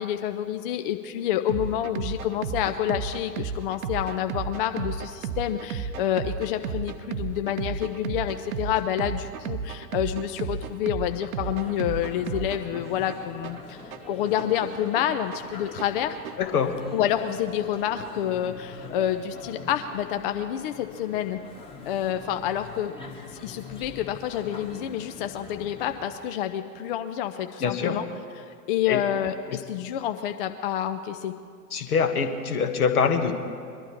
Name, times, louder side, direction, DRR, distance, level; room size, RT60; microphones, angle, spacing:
voice 1, 0.0-16.2 16.9-21.4 21.9-22.9 23.3-28.1 28.4-31.3, left 10 dB, 35° left, 8 dB, 0.5 m, -28 dB
sound 1, 1.5-16.5, right 6 dB, 60° right, 0.8 m, -34 dB
sound 2, 11.4-26.2, left 4 dB, 10° left, 1.3 m, -44 dB
voice 2, 16.4-16.8 27.6-28.0 28.9-29.0 29.5-29.6 31.7-33.3, left 6 dB, 65° left, 6 dB, 1.5 m, -24 dB
21.5 x 12.0 x 4.3 m, 2.3 s
figure-of-eight pair, 95°, 48 cm